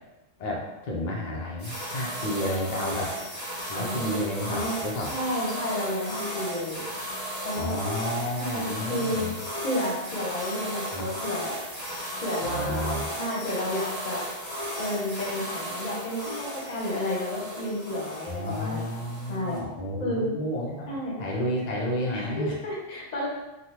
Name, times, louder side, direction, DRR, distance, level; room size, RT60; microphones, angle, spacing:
voice 1, 0.4-3.1 3.7-5.1 7.5-9.3 10.9-11.1 12.4-13.1 18.3-20.9 21.2-22.6, left 1 dB, 80° left, -2 dB, 0.3 m, -31 dB
sound 1, 1.6-19.6, equal, 15° right, 1.1 m, -35 dB
voice 2, 3.7-4.2 4.5-6.8 7.4-7.8 8.3-9.3 9.6-11.5 12.2-12.9 13.2-14.2 14.8-18.9 19.3-19.6 20.0-20.3 20.9-21.2 22.1-23.3, left 1 dB, 40° left, -4 dB, 0.7 m, -31 dB
3.3 x 2.1 x 2.8 m, 1.0 s
omnidirectional pair, 1.3 m